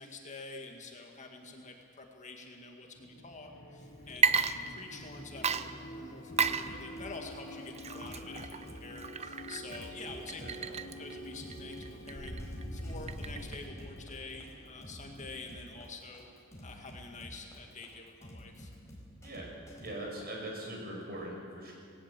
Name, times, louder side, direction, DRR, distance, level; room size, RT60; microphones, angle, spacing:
voice 1, 0.0-10.4 11.0-12.4 12.7-16.3 16.6-18.7, left 3 dB, 35° left, 2 dB, 2.1 m, -47 dB
sound 1, 2.9-16.4, equal, 90° left, 3.0 m, -46 dB
Water / Liquid, 4.1-5.1 5.4-13.7, right 6 dB, 30° right, 0.6 m, -34 dB
sound 2, 6.3-19.9, equal, 15° left, 4.4 m, -50 dB
voice 2, 10.4-10.8 19.2-19.5 19.8-21.7, right 1 dB, 50° right, -1 dB, 5.9 m, -41 dB
18.5 x 18.0 x 7.8 m, 2.4 s
head